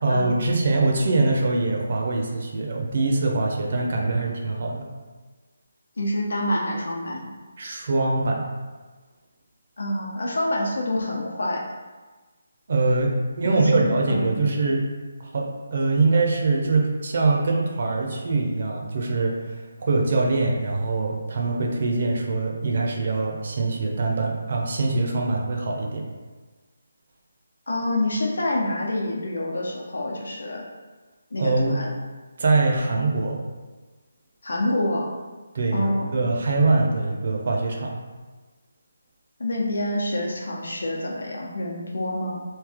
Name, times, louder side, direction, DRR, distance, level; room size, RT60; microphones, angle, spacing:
voice 1, 0.0-4.9 7.6-8.5 12.7-14.8 15.2-26.1 31.4-31.8 32.4-33.4 35.5-37.9, right 3 dB, 40° right, 0 dB, 0.6 m, -23 dB
voice 2, 6.0-7.3 9.8-11.6 13.4-14.5 27.7-30.6 31.3-31.9 34.4-35.1 35.7-36.1 39.4-42.4, left 1 dB, 80° left, -2 dB, 0.9 m, -27 dB
3.2 x 2.7 x 3.5 m, 1.3 s
hypercardioid pair, 175°, 0 cm